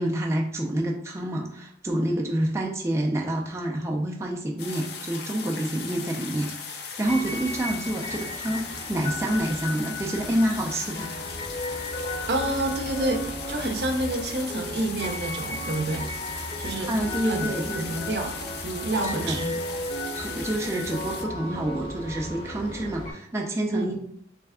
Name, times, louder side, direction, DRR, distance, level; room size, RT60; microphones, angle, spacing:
voice 1, 0.0-11.1 16.9-17.9 19.0-19.4 20.1-24.0, right 1 dB, 15° right, -1 dB, 0.4 m, -28 dB
sound 1, 4.6-21.3, left 5 dB, 60° left, 0.6 m, -38 dB
sound 2, 7.0-23.1, left 1 dB, 30° left, 0.7 m, -35 dB
voice 2, 12.3-16.1 16.6-17.0 17.2-18.4 18.6-19.6 23.7-24.0, right 2 dB, 65° right, 5 dB, 0.6 m, -29 dB
3.3 x 3.3 x 3.5 m, 0.69 s
head